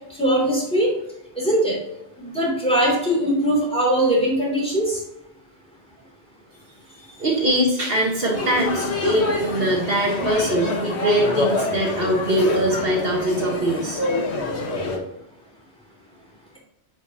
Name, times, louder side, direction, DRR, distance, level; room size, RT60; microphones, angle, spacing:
voice 1, 0.1-0.9 1.4-1.8 2.2-5.0, right 1 dB, 5° left, -4 dB, 3.0 m, -21 dB
voice 2, 7.2-14.0, right 1 dB, 60° right, -1 dB, 1.7 m, -22 dB
sound 1, 8.3-15.0, left 2 dB, 85° left, 1.7 m, -26 dB
10.5 x 5.1 x 2.9 m, 0.85 s
omnidirectional pair, 1.1 m